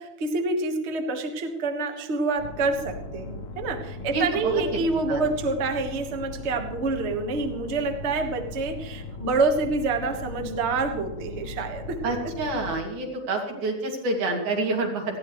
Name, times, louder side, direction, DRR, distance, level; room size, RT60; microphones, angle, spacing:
voice 1, 0.0-12.0, right 3 dB, 50° right, 4 dB, 0.8 m, -27 dB
sound 1, 2.4-12.8, left 2 dB, 65° left, 1.5 m, -38 dB
voice 2, 4.0-4.8 5.1-5.5 12.0-15.2, right 2 dB, 75° right, 1 dB, 3.9 m, -28 dB
19.0 x 15.0 x 3.2 m, 1.1 s
omnidirectional pair, 3.5 m